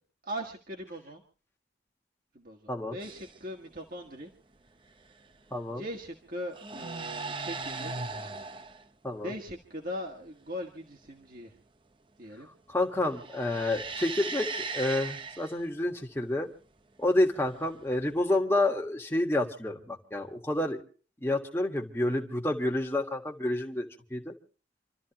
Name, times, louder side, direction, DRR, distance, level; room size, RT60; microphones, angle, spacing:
voice 1, 0.2-1.2 2.3-4.3 5.7-8.1 9.2-11.6 12.2-12.5, equal, 50° right, 1 dB, 1.7 m, -40 dB
sound 1, 3.0-3.4 5.0-5.4 6.4-8.9 13.0-15.6 17.5-18.2, right 4 dB, 25° right, 0.6 m, -38 dB
voice 2, 5.5-5.8 9.0-9.3 12.7-16.5 17.0-20.8 21.2-24.3, left 1 dB, 15° left, 1 dB, 1.6 m, -29 dB
27.5 x 13.0 x 2.9 m, 0.40 s
head